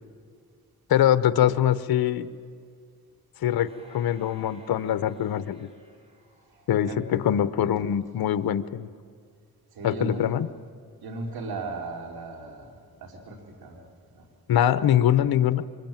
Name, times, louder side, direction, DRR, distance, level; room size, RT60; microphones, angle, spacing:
voice 1, 0.9-2.3 3.4-5.7 6.7-8.9 9.8-10.5 14.5-15.6, left 10 dB, 80° left, 13 dB, 0.9 m, -23 dB
sound 1, 3.6-7.1 7.6-7.7, right 1 dB, 15° right, 7.1 m, -56 dB
voice 2, 9.7-10.3 11.0-13.8 14.1-14.2, right 2 dB, 85° right, 2 dB, 4.1 m, -36 dB
25.5 x 23.0 x 9.1 m, 2.2 s
cardioid pair, 75°, 36 cm